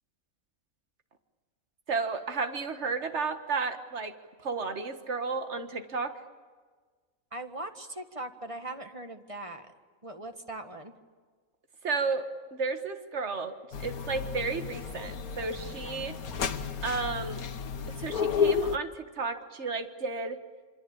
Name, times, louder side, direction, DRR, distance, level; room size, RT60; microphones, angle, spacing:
voice 1, 1.9-4.1 4.4-6.1 11.8-16.2 16.8-17.4 17.9-20.4, right 4 dB, 55° right, 8 dB, 2.0 m, -33 dB
voice 2, 7.3-9.7 10.0-10.9, right 2 dB, 25° right, 6 dB, 1.6 m, -40 dB
sound 1, 13.7-18.8, left 6 dB, 90° left, 1.7 m, -32 dB
27.0 x 25.5 x 8.7 m, 1.5 s
omnidirectional pair, 1.5 m